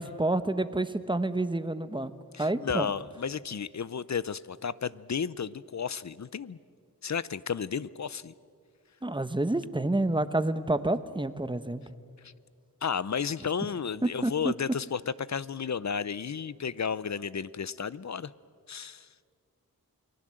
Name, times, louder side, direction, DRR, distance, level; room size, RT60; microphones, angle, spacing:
voice 1, 0.0-2.1 2.4-2.9 9.0-11.8 14.2-14.5, right 2 dB, 15° right, 12 dB, 1.1 m, -28 dB
voice 2, 2.3-6.6 7.0-8.3 12.2-12.3 12.8-18.3 18.7-19.1, left 6 dB, 50° left, 18 dB, 0.7 m, -33 dB
28.5 x 20.0 x 7.7 m, 2.2 s
wide cardioid pair, 65°, 36 cm